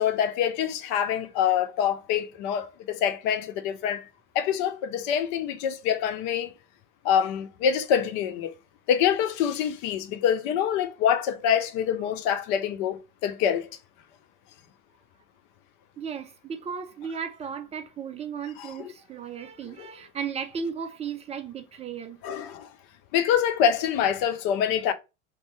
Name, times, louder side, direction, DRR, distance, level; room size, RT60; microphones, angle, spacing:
voice 1, 0.0-4.0 4.3-6.5 7.0-8.5 8.9-13.7 18.6-18.9 19.8-19.9 22.2-22.7 23.1-24.9, left 8 dB, 55° left, 0.6 m, -25 dB
voice 2, 16.0-22.2, right 6 dB, 20° right, 0.3 m, -35 dB
2.6 x 2.3 x 3.1 m
hypercardioid pair, 75°, 41 cm